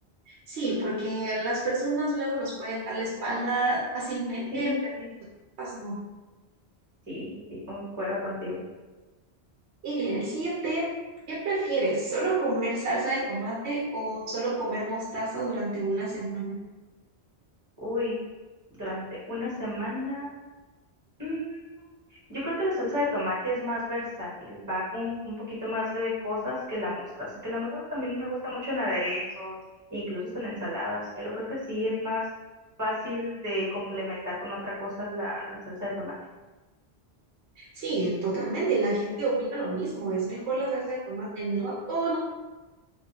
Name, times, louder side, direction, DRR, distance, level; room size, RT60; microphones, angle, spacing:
voice 1, 0.3-4.7 5.6-6.0 9.8-10.9 11.3-16.6 37.6-42.2, right 2 dB, 85° right, -6 dB, 0.9 m, -29 dB
voice 2, 4.5-5.1 7.1-8.6 17.8-18.2 18.7-19.0 19.3-20.4 21.2-21.8 22.3-29.6 29.9-32.2 32.8-36.1, left 1 dB, 15° right, -8 dB, 1.2 m, -32 dB
2.9 x 2.4 x 2.8 m, 1.2 s
omnidirectional pair, 1.1 m